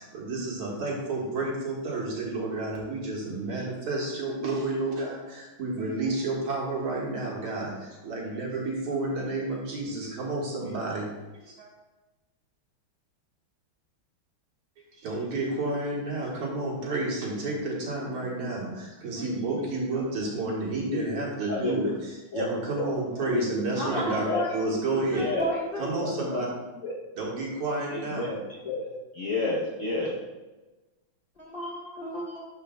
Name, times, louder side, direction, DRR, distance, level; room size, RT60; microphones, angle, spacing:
voice 1, 0.0-11.1 11.4-11.7 15.0-24.3 24.5-25.2 25.8-26.5 27.2-28.3, right 2 dB, 85° right, -3 dB, 2.5 m, -31 dB
voice 2, 23.7-25.9 31.4-32.4, equal, 25° left, -6 dB, 1.8 m, -33 dB
voice 3, 25.1-25.5 26.0-26.4 26.8-26.9 27.9-28.9 29.1-30.1, left 3 dB, 55° left, -5 dB, 0.9 m, -30 dB
12.5 x 5.1 x 2.2 m, 1.2 s
omnidirectional pair, 2.3 m